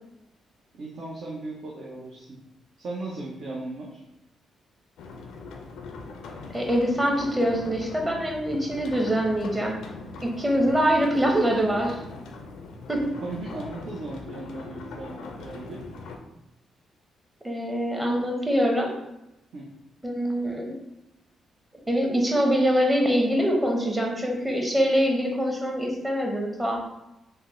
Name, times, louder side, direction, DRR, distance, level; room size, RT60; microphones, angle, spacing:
voice 1, 0.7-2.4 2.8-4.0 13.2-15.8 19.5-19.7, right 2 dB, 65° right, -4 dB, 0.5 m, -37 dB
sound 1, 5.0-16.2, left 3 dB, 75° left, 0.4 m, -41 dB
voice 2, 6.5-9.8 10.2-12.0 12.9-13.2 17.4-18.9 20.0-20.8 21.9-26.8, equal, 15° right, 0 dB, 0.9 m, -24 dB
3.5 x 2.0 x 3.0 m, 0.91 s
supercardioid pair, 50°, 0 cm